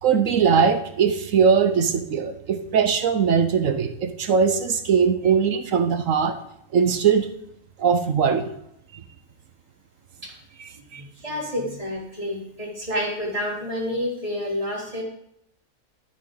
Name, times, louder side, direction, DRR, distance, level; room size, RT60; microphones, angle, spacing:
voice 1, 0.0-6.4 6.7-7.3 7.8-8.5 10.6-11.0, right 6 dB, 75° right, 8 dB, 1.2 m, -20 dB
voice 2, 11.0-15.0, left 1 dB, 25° right, -5 dB, 4.3 m, -29 dB
13.0 x 12.0 x 3.9 m, 0.77 s
omnidirectional pair, 1.4 m